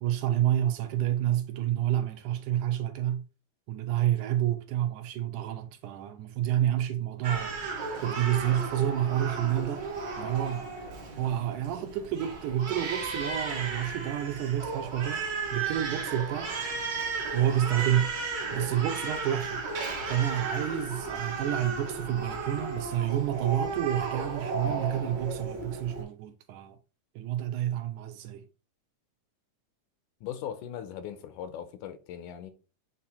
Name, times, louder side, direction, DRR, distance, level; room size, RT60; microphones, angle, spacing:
voice 1, 0.0-3.2 3.7-7.6 8.0-9.9 10.2-10.7 11.2-15.2 15.5-16.5 17.3-19.6 20.1-26.8 27.2-28.5, right 11 dB, 80° right, 2.1 m, -29 dB
Crying sobbing, 7.2-26.0, right 4 dB, 50° right, 1.4 m, -34 dB
voice 2, 30.2-32.5, left 9 dB, 80° left, 2.2 m, -39 dB
7.8 x 2.9 x 4.2 m
omnidirectional pair, 3.7 m